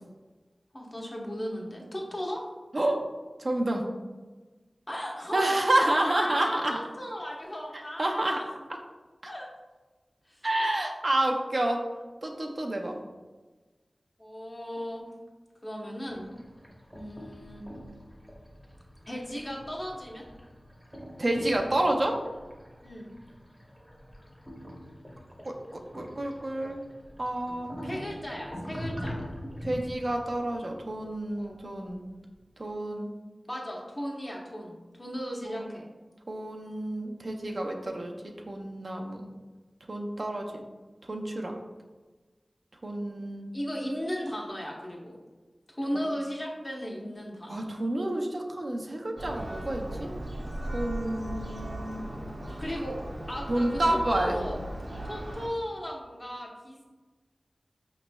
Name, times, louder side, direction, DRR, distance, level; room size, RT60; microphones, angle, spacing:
voice 1, 0.7-2.5 4.9-5.6 5.9-8.5 9.3-9.5 10.3-10.4 14.2-15.0 15.6-16.3 16.9-17.6 19.1-20.2 22.8-23.1 27.9-29.2 31.4-31.6 33.5-35.9 43.5-45.2 45.7-47.6 52.6-53.0 53.3-53.8 54.1-54.6 55.0-56.9, equal, 35° left, -2 dB, 0.8 m, -36 dB
voice 2, 3.4-3.9 5.3-6.8 7.7-8.4 9.2-9.3 10.4-11.8 12.2-13.0 21.2-22.2 25.4-25.5 25.9-26.8 27.2-27.7 29.6-32.0 32.6-33.1 35.4-35.7 36.3-38.1 38.5-39.3 39.9-40.5 41.1-41.5 42.8-43.5 45.9-46.0 47.5-50.1 50.7-52.1 53.5-54.4, right 1 dB, 55° right, 1 dB, 0.5 m, -29 dB
sound 1, 16.0-32.2, equal, ahead, 0.8 m, -44 dB
Church bell, 49.2-55.5, right 1 dB, 80° right, 0.9 m, -37 dB
5.0 x 3.0 x 2.2 m, 1.3 s
wide cardioid pair, 55°, 0 cm